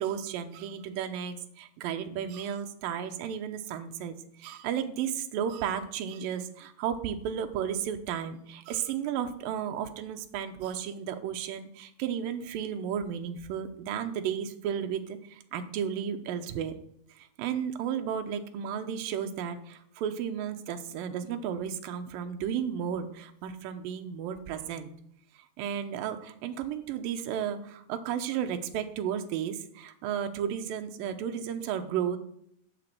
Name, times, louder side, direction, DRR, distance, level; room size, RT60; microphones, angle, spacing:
voice 1, 0.0-16.7 17.2-24.9 25.6-32.2, right 8 dB, 70° right, 6 dB, 2.4 m, -33 dB
10.5 x 6.1 x 7.7 m, 0.72 s
omnidirectional pair, 4.6 m